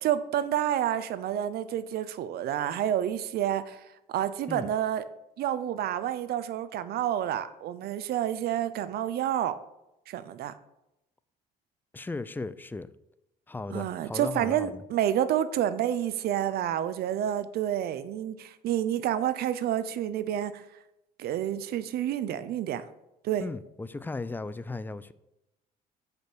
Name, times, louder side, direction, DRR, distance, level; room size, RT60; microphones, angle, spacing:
voice 1, 0.0-3.8 4.1-5.0 5.4-9.6 10.1-10.5 13.7-20.6 21.2-22.8 23.2-23.4, right 11 dB, 70° right, 0.7 m, -29 dB
voice 2, 11.9-12.9 13.5-14.8 23.4-25.1, left 3 dB, 10° left, 0.4 m, -36 dB
6.9 x 5.2 x 6.2 m
cardioid pair, 110°, 17 cm